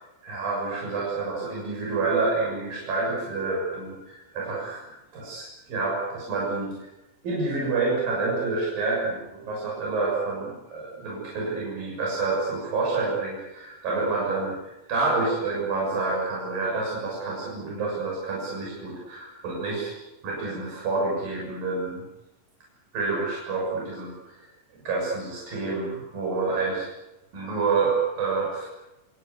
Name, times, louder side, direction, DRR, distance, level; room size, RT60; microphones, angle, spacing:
voice 1, 0.2-4.9 5.1-6.8 7.2-19.9 20.2-22.0 22.9-24.5 24.8-26.9 27.3-28.7, right 3 dB, 70° right, -3 dB, 8.4 m, -28 dB
29.0 x 19.0 x 8.4 m, 0.99 s
omnidirectional pair, 4.2 m